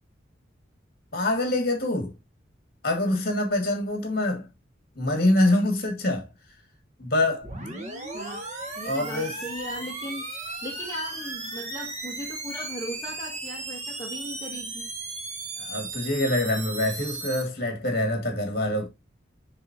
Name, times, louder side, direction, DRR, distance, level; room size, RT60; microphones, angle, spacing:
voice 1, 1.1-2.1 2.8-4.5 5.0-6.3 7.0-7.5 8.8-9.4 15.6-18.9, left 1 dB, 50° left, 2.3 m, -25 dB
sound 1, 7.4-17.4, right 3 dB, 35° right, 1.3 m, -36 dB
voice 2, 8.1-8.4 8.7-14.9, left 1 dB, 15° left, 1.3 m, -38 dB
9.5 x 3.7 x 2.9 m
head